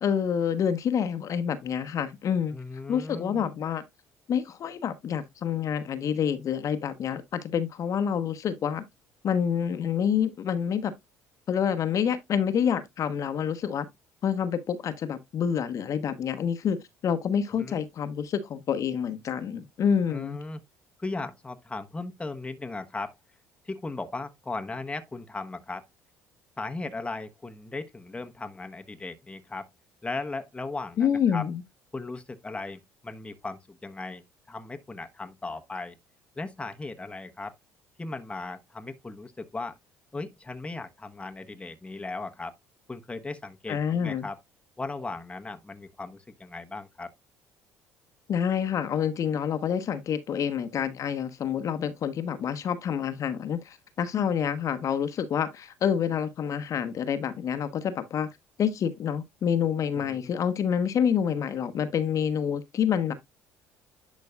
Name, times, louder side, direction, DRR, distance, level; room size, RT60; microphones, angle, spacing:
voice 1, 0.0-2.5 2.9-3.8 4.3-8.8 9.2-10.9 11.5-13.9 14.2-16.8 17.0-20.4 31.0-31.6 43.7-44.3 48.3-58.3 58.6-63.1, left 8 dB, 55° left, 1.0 m, -27 dB
voice 2, 2.5-3.5 17.6-17.8 20.1-20.6 21.0-23.1 23.6-25.8 26.6-29.7 30.0-31.5 31.9-34.2 34.5-36.0 36.4-37.5 38.0-39.8 40.1-42.5 42.9-44.4 44.8-47.1 59.9-60.3, left 3 dB, 15° left, 1.0 m, -37 dB
10.5 x 5.1 x 2.3 m
hypercardioid pair, 60°, 7 cm